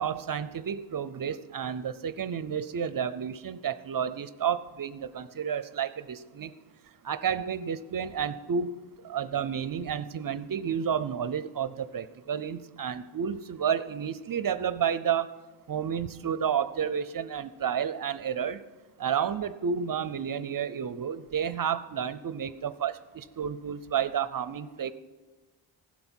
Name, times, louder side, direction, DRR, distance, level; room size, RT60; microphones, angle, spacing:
voice 1, 0.0-6.5 7.0-8.8 9.0-15.3 15.7-18.6 19.0-24.9, right 8 dB, 50° right, 14 dB, 0.5 m, -31 dB
16.0 x 8.0 x 4.4 m, 1.3 s
cardioid pair, 75°, 46 cm